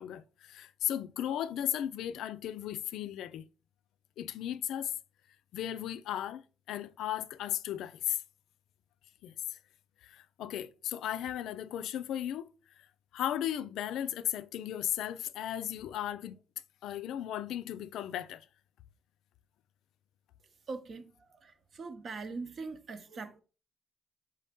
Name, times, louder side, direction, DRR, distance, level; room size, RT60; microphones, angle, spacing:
voice 1, 0.0-3.4 4.2-4.9 5.5-6.4 6.7-8.2 9.2-9.6 10.0-12.5 13.1-16.4 16.8-18.5, left 11 dB, 85° left, 0.3 m, -36 dB
voice 2, 20.7-21.1 21.4-23.4, right 4 dB, 50° right, 0.7 m, -41 dB
4.8 x 2.7 x 3.5 m
cardioid pair, 90°, 0 cm